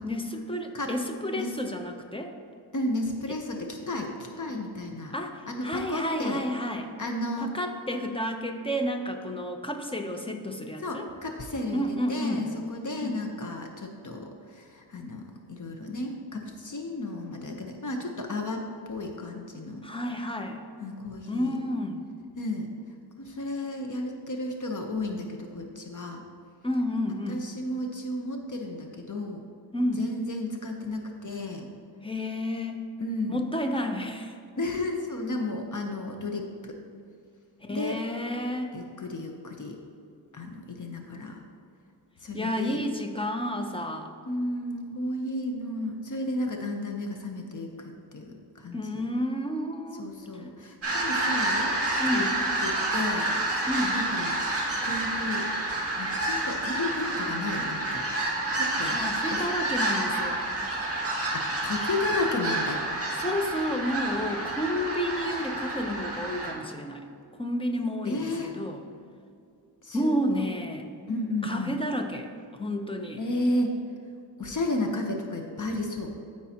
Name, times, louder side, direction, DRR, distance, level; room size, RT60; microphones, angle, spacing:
voice 1, 0.0-2.3 5.1-6.9 7.4-11.1 11.7-12.5 13.0-13.1 19.8-20.6 21.3-22.0 26.6-27.4 29.7-30.0 32.0-32.9 33.3-34.4 37.6-38.7 42.3-44.1 48.7-50.1 52.0-52.3 53.7-54.0 58.8-60.4 63.1-67.1 67.4-68.8 69.9-70.9 71.4-73.2, left 1 dB, 15° left, 4 dB, 0.6 m, -31 dB
voice 2, 2.7-4.1 4.4-5.1 5.5-6.4 7.0-7.5 10.8-19.8 20.8-21.5 22.4-22.7 23.2-26.2 27.3-29.4 30.0-31.7 33.0-33.4 34.6-36.8 37.7-38.0 38.7-39.8 40.3-41.4 42.2-42.8 44.3-49.0 50.0-51.7 52.0-52.3 52.6-53.3 53.9-54.3 54.8-55.5 56.0-58.0 58.5-59.0 59.3-59.4 61.3-62.8 68.1-68.5 69.8-70.5 71.1-71.8 73.2-73.7 74.4-76.1, left 2 dB, 45° left, 3 dB, 0.8 m, -33 dB
sound 1, 50.8-66.5, right 2 dB, 35° right, 1.5 m, -29 dB
12.5 x 4.7 x 2.9 m, 2.4 s
wide cardioid pair, 115°, 42 cm